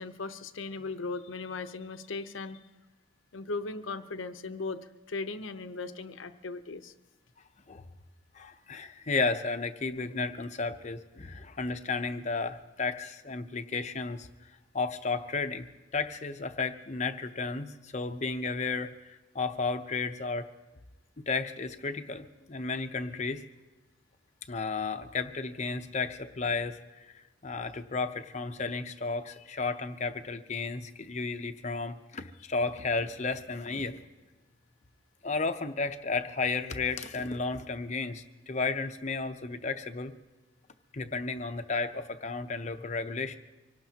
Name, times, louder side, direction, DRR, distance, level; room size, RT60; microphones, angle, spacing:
voice 1, 0.0-2.6 3.3-4.8 5.1-6.9, left 3 dB, 80° left, 10 dB, 0.8 m, -37 dB
voice 2, 8.3-15.7 15.9-20.5 21.2-23.5 24.5-34.0 35.2-40.1 40.9-43.4, left 4 dB, 35° left, 8 dB, 0.7 m, -33 dB
25.0 x 17.5 x 2.9 m, 1.1 s
head